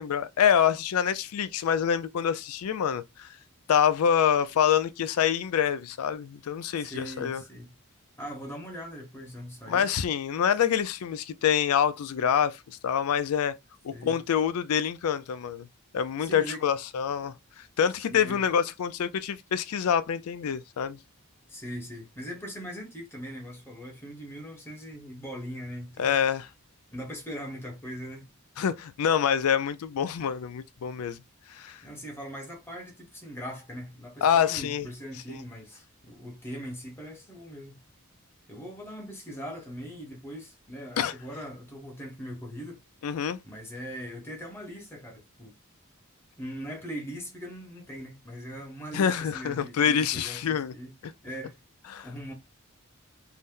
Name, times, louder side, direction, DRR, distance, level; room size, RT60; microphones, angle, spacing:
voice 1, 0.0-3.3 3.7-7.4 9.7-13.5 13.8-15.7 15.9-21.0 26.0-26.5 28.6-31.2 31.5-31.8 34.2-34.9 35.3-35.4 41.0-41.1 43.0-43.4 48.9-50.7 51.9-52.1, left 8 dB, 85° left, 0.4 m, -26 dB
voice 2, 6.8-7.7 8.2-9.9 13.9-14.2 16.2-16.6 17.9-18.4 21.5-26.2 26.9-28.2 31.8-37.8 38.5-42.8 43.4-45.5 46.4-50.9 51.2-51.6 52.0-52.3, equal, 10° left, 1.0 m, -40 dB
2.7 x 2.1 x 3.6 m
head